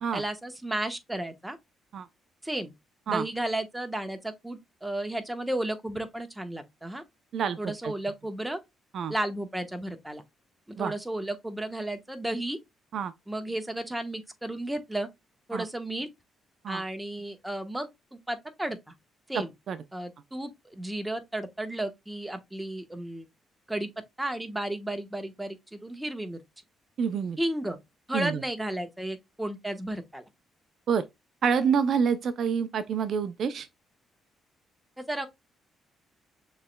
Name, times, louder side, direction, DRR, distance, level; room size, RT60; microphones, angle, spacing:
voice 1, 0.1-1.6 2.4-2.7 3.1-7.0 7.6-8.6 9.1-10.2 10.7-12.6 13.3-15.1 15.5-16.1 16.7-18.8 19.3-19.5 19.9-23.3 23.7-23.9 24.2-26.4 27.4-27.8 28.1-30.2 35.0-35.3, right 1 dB, 10° right, 1.0 m, -33 dB
voice 2, 7.3-7.9 8.9-9.1 10.8-10.9 12.9-13.1 15.5-15.6 16.6-16.8 19.3-19.8 27.0-27.4 28.1-28.4 30.9-31.0 31.4-33.7, right 6 dB, 60° right, 0.5 m, -27 dB
6.5 x 3.2 x 2.2 m
cardioid pair, 90°, 0 cm